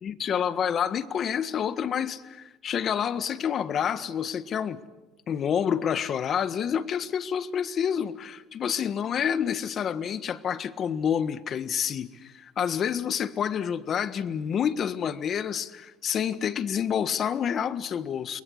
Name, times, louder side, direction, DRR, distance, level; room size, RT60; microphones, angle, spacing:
voice 1, 0.0-4.8 5.3-18.4, left 8 dB, 45° left, 1.5 m, -28 dB
29.0 x 22.5 x 8.1 m
cardioid pair, 105°, 0 cm